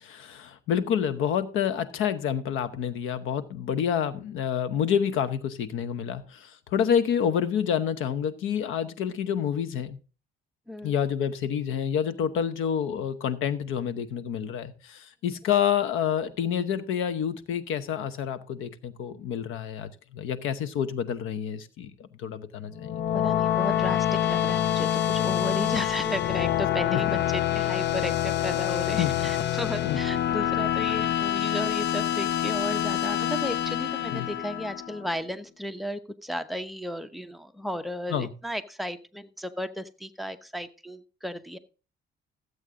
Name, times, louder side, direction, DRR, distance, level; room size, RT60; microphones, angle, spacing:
voice 1, 0.0-10.0 10.8-23.2 26.9-27.2 29.0-29.1 29.8-30.0 34.1-34.3 38.1-38.3, left 8 dB, 90° left, 1.0 m, -28 dB
voice 2, 10.7-11.0 23.1-27.1 27.3-41.6, equal, ahead, 0.9 m, -34 dB
sound 1, 22.7-35.1, left 11 dB, 60° left, 0.7 m, -26 dB
14.0 x 8.1 x 3.7 m
cardioid pair, 90°, 20 cm